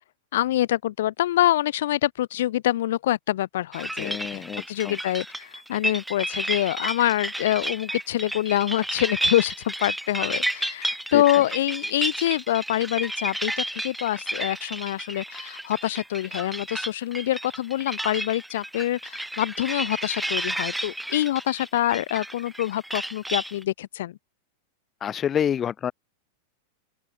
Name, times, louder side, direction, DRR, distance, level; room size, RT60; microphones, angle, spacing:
voice 1, 0.3-24.2, left 13 dB, 75° left, 6.9 m, -25 dB
sound 1, 3.7-23.6, right 1 dB, 5° right, 3.2 m, -32 dB
voice 2, 4.0-4.9 11.1-11.4 25.0-25.9, left 9 dB, 25° left, 2.1 m, -28 dB
open air
supercardioid pair, 135°, 0 cm